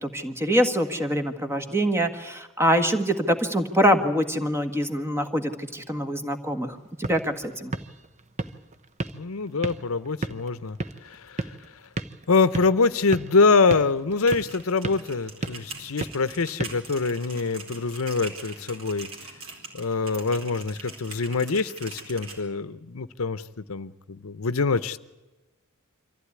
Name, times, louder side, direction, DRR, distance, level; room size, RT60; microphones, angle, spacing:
voice 1, 0.0-7.7, equal, 10° right, 7 dB, 1.6 m, -24 dB
sound 1, 6.7-17.5, right 2 dB, 35° right, 0.9 m, -36 dB
voice 2, 9.1-10.8 11.0-11.6 12.3-19.1 19.7-25.0, left 4 dB, 75° left, 14 dB, 0.8 m, -25 dB
sound 2, 14.1-22.4, right 4 dB, 70° right, 4.5 m, -43 dB
24.5 x 15.0 x 9.7 m, 1.1 s
head